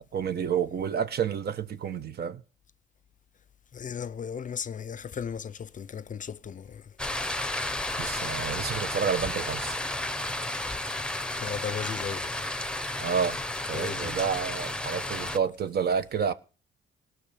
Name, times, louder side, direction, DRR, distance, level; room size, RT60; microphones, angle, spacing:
voice 1, 0.1-2.4 8.0-9.8 13.0-13.4 13.7-16.3, right 7 dB, 55° right, 1.1 m, -29 dB
voice 2, 3.7-6.9 11.3-12.3 13.7-14.3, left 7 dB, 40° left, 0.6 m, -36 dB
sound 1, 7.0-15.4, left 1 dB, 5° left, 0.9 m, -32 dB
18.5 x 6.3 x 7.0 m
cardioid pair, 90°, 20 cm